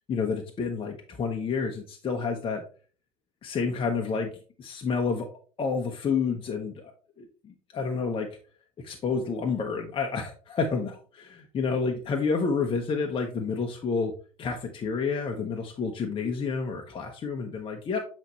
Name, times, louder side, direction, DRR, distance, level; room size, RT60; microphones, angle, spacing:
voice 1, 0.1-2.6 3.4-4.3 4.6-5.3 5.6-8.3 8.8-14.1 14.4-18.0, left 5 dB, 30° left, 2 dB, 1.0 m, -29 dB
7.9 x 4.2 x 3.1 m, 0.39 s
figure-of-eight pair, 70°, 18 cm